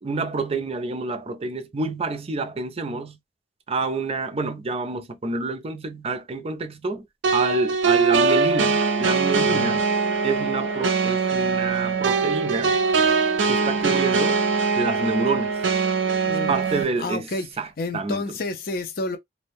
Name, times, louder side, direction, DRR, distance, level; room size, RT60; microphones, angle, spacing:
voice 1, 0.0-3.2 3.7-7.1 7.3-9.9 10.2-12.8 13.5-14.4 14.8-15.6 16.3-17.3 17.6-17.7 17.9-18.2, right 3 dB, 35° right, 0.5 m, -28 dB
sound 1, 7.2-16.8, right 4 dB, 85° right, 0.5 m, -22 dB
voice 2, 9.5-9.8 16.2-16.5 17.0-17.5 17.8-19.2, left 2 dB, 55° left, 0.6 m, -30 dB
2.5 x 2.1 x 3.4 m
head